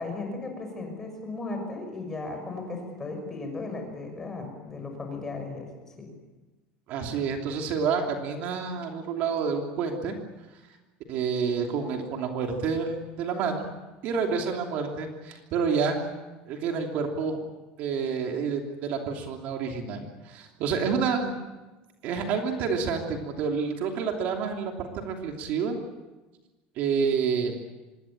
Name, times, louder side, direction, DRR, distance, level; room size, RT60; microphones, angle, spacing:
voice 1, 0.0-5.7 6.0-6.1, left 3 dB, 15° left, 4 dB, 6.0 m, -36 dB
voice 2, 6.9-10.2 11.1-13.7 14.0-16.0 16.5-17.4 17.8-21.3 22.0-25.8 26.8-27.6, right 5 dB, 45° right, 3 dB, 3.0 m, -28 dB
25.5 x 22.0 x 8.7 m, 1.2 s
cardioid pair, 175°, 4 cm